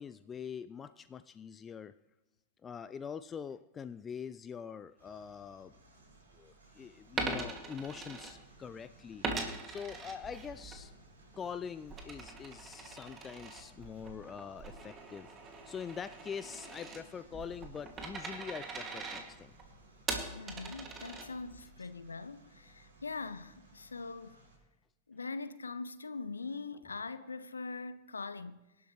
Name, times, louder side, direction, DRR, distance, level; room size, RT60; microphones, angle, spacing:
voice 1, 0.0-1.9 2.6-5.7 6.3-9.2 9.6-10.9 11.4-15.3 15.6-19.5, left 7 dB, 20° left, 0.4 m, -44 dB
sound 1, 5.0-24.6, right 2 dB, 70° right, 6.3 m, -61 dB
Coin (dropping), 7.1-8.8 9.2-10.8 11.2-21.6, right 3 dB, 25° right, 2.2 m, -42 dB
voice 2, 20.3-24.4 25.1-28.7, left 4 dB, 75° left, 0.6 m, -42 dB
25.0 x 11.5 x 3.1 m
figure-of-eight pair, 90°, 0 cm